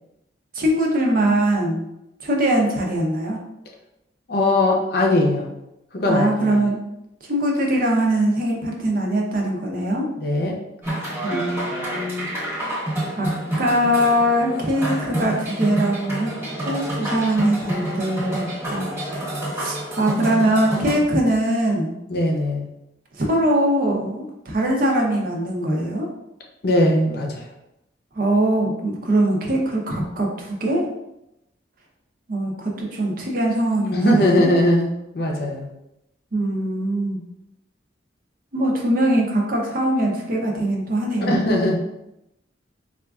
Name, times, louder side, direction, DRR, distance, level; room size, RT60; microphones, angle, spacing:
voice 1, 0.5-1.9 2.2-3.4 6.1-6.8 7.3-10.1 11.2-12.3 13.2-13.3 13.6-16.3 16.6-18.9 19.5-21.9 23.1-26.1 28.1-30.8 32.3-34.5 36.3-37.2 38.5-41.4, right 1 dB, 50° right, 0 dB, 0.6 m, -22 dB
voice 2, 4.3-5.5 5.9-6.6 10.2-10.6 22.1-22.7 26.6-27.5 33.9-35.7 41.2-41.8, left 1 dB, 55° left, 0 dB, 0.6 m, -20 dB
sound 1, 10.8-20.9, right 1 dB, 10° right, 0.9 m, -28 dB
4.2 x 2.4 x 2.3 m, 0.87 s
head